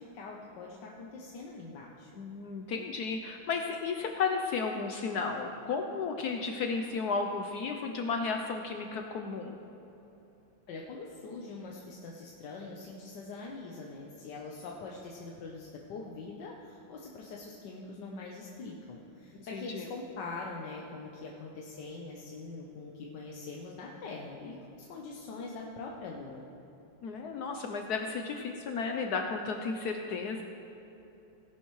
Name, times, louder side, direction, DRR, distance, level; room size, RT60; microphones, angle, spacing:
voice 1, 0.0-2.1 10.7-24.6 24.9-26.5, left 3 dB, 60° left, -2 dB, 1.4 m, -43 dB
voice 2, 2.2-9.6 19.5-19.9 27.0-30.4, left 4 dB, 80° left, 4 dB, 0.8 m, -33 dB
17.5 x 11.0 x 3.1 m, 3.0 s
omnidirectional pair, 2.4 m